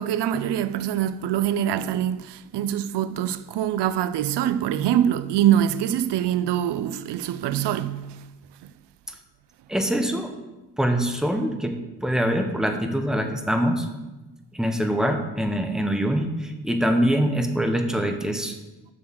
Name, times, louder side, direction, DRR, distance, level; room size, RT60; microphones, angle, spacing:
voice 1, 0.0-8.2, right 10 dB, 90° right, 0.5 m, -24 dB
voice 2, 9.7-10.3 10.8-11.7 12.0-13.9 14.5-18.6, equal, ahead, 0.9 m, -24 dB
7.1 x 6.3 x 6.3 m
cardioid pair, 115°, 40 cm